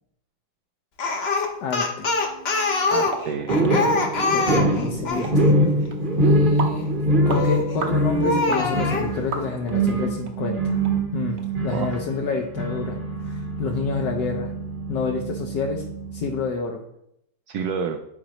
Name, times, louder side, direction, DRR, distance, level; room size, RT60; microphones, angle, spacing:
Speech, 1.0-5.3 7.3-7.7 8.2-9.1, left 3 dB, 45° left, 0.9 m, -24 dB
voice 1, 1.3-2.1 3.7-3.9 4.3-5.4 6.1-6.9 7.3-10.8 11.1-13.0 13.3-14.5 14.9-15.8 16.1-16.8, left 5 dB, 70° left, 1 dB, 1.3 m, -29 dB
voice 2, 2.9-4.1 11.7-12.0 17.5-18.0, right 6 dB, 70° right, 5 dB, 0.9 m, -30 dB
sound 1, 3.1-3.3 3.6-3.8 4.2-4.3 4.6-4.7 5.2-5.4 5.9-6.0 6.6-6.8 7.3-7.4 7.8-8.0 8.5-8.7 9.3-9.8 10.2-10.3 10.8-10.9 11.4-11.5, right 4 dB, 50° right, 1.2 m, -32 dB
sound 2, 3.5-16.4, right 1 dB, 35° right, 1.0 m, -24 dB
11.5 x 5.1 x 3.0 m, 0.79 s
omnidirectional pair, 2.1 m